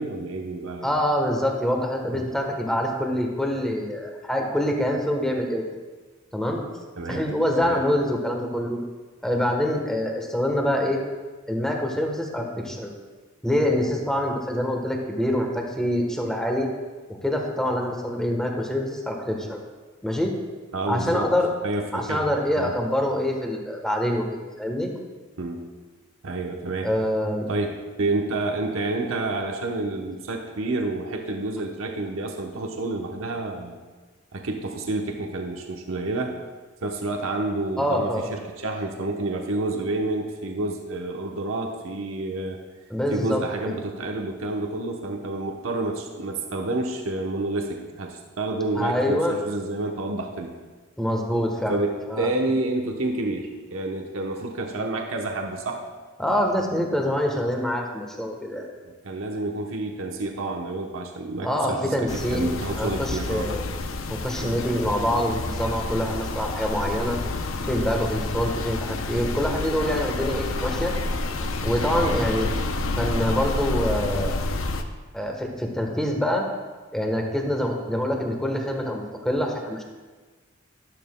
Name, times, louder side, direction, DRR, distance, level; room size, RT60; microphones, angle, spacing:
voice 1, 0.0-0.9 2.1-2.3 7.0-7.2 7.6-7.8 20.7-21.3 21.6-22.7 25.4-25.6 26.2-26.9 27.5-33.8 34.3-36.4 36.8-42.6 43.1-50.5 51.7-55.8 59.0-63.5 64.4-64.6 71.9-72.1, right 2 dB, 80° right, 1 dB, 1.0 m, -29 dB
voice 2, 0.8-5.6 6.3-6.6 7.1-8.8 9.2-11.0 11.5-12.9 13.4-16.7 17.2-19.6 20.0-20.3 20.9-21.5 21.9-24.9 26.8-27.5 37.8-38.3 42.9-43.4 48.7-49.3 51.0-51.8 52.1-52.3 56.2-58.7 61.4-62.5 62.7-63.7 64.1-67.2 67.7-70.9 71.6-72.5 73.0-74.3 75.1-76.5 76.9-79.8, left 1 dB, 5° left, 1 dB, 1.2 m, -25 dB
sound 1, 62.1-74.8, left 2 dB, 75° left, 0.7 m, -29 dB
12.5 x 11.5 x 2.3 m, 1.3 s
head